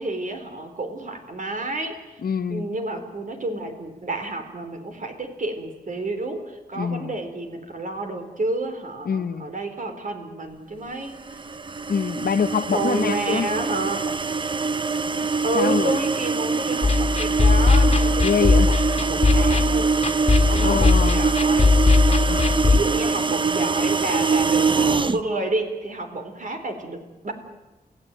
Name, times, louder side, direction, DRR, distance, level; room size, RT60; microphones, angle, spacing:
voice 1, 0.0-2.0 2.5-11.4 12.7-14.2 15.4-19.9 20.5-22.0 22.6-27.3, right 2 dB, 55° right, 4.0 m, -30 dB
voice 2, 2.2-2.6 6.8-7.1 9.1-9.5 11.9-13.5 15.5-16.0 18.2-18.7 20.6-21.2 22.3-22.6, left 6 dB, 70° left, 0.8 m, -25 dB
sound 1, 11.3-25.2, right 4 dB, 30° right, 0.7 m, -24 dB
sound 2, 16.8-22.8, left 3 dB, 40° left, 2.0 m, -19 dB
28.0 x 16.5 x 9.1 m
wide cardioid pair, 125°, 16 cm